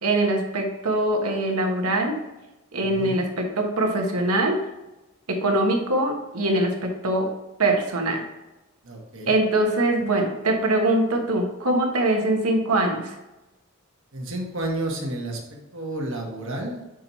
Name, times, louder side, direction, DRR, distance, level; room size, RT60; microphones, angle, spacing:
voice 1, 0.0-2.1 2.7-4.6 5.4-7.3 7.6-8.2 9.3-13.1, right 1 dB, 90° right, 2 dB, 1.3 m, -23 dB
voice 2, 2.8-3.2 8.8-9.3 14.1-16.8, right 1 dB, 60° right, 0 dB, 1.4 m, -31 dB
6.4 x 4.5 x 4.1 m, 1.0 s
head